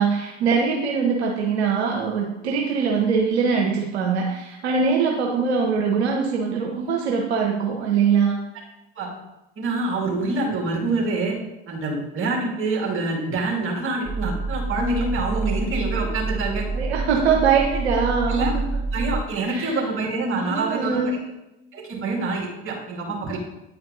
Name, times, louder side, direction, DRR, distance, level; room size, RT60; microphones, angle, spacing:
voice 1, 0.0-8.4 16.7-18.6 19.5-19.8 20.3-21.2, right 5 dB, 75° right, 0 dB, 1.0 m, -22 dB
voice 2, 9.6-11.4 11.7-16.7 17.5-17.6 18.3-18.5 18.9-21.2 21.7-23.4, right 3 dB, 40° right, -1 dB, 2.5 m, -26 dB
sound 1, 14.0-19.2, right 3 dB, 15° right, 0.5 m, -27 dB
9.3 x 4.4 x 4.0 m, 0.94 s
hypercardioid pair, 70°, 33 cm